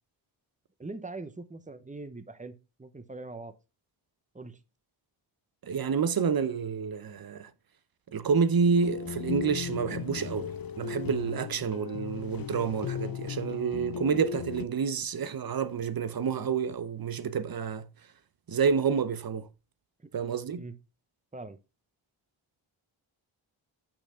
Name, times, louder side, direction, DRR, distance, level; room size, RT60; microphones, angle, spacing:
voice 1, 0.8-3.5 4.3-4.6 20.0-20.1 20.6-20.7 21.3-21.6, right 3 dB, 15° right, 1.0 m, -42 dB
voice 2, 5.6-7.5 8.1-17.9 18.5-19.5 20.1-20.7, right 6 dB, 45° right, 0.8 m, -29 dB
sound 1, 8.7-14.6, left 8 dB, 45° left, 0.7 m, -36 dB
6.3 x 6.0 x 3.6 m
cardioid pair, 45°, 50 cm